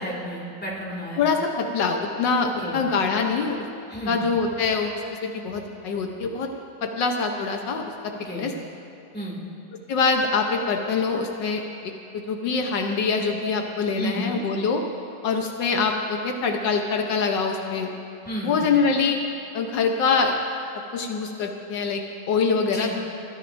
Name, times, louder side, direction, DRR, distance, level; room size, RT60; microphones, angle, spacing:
voice 1, 0.0-1.3 2.6-2.8 3.9-4.2 8.2-8.5 9.1-9.4 14.0-14.4 18.3-18.6 22.6-22.9, equal, 5° left, -5 dB, 2.3 m, -31 dB
voice 2, 1.2-3.7 4.1-4.9 5.2-6.5 6.8-8.5 9.9-14.8 15.2-17.9 18.4-19.2 19.5-20.4 20.9-22.9, left 4 dB, 75° left, 3 dB, 1.5 m, -24 dB
20.5 x 14.0 x 2.6 m, 3.0 s
omnidirectional pair, 1.9 m